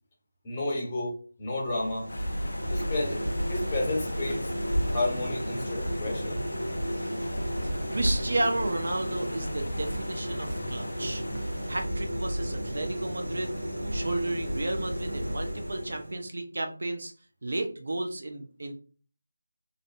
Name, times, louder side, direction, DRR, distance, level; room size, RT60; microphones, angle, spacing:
voice 1, 0.4-2.1 2.7-3.2 3.5-4.5 4.9-6.4, left 2 dB, 20° left, -2 dB, 0.6 m, -31 dB
sound 1, 1.6-16.3, equal, 85° right, 1.0 m, -32 dB
sound 2, 2.1-11.9, left 1 dB, 60° left, 0.3 m, -41 dB
voice 2, 7.6-13.5 13.9-17.1 17.4-18.7, right 2 dB, 50° right, 4 dB, 0.4 m, -33 dB
2.5 x 2.1 x 2.5 m, 0.40 s
figure-of-eight pair, 160°, 0 cm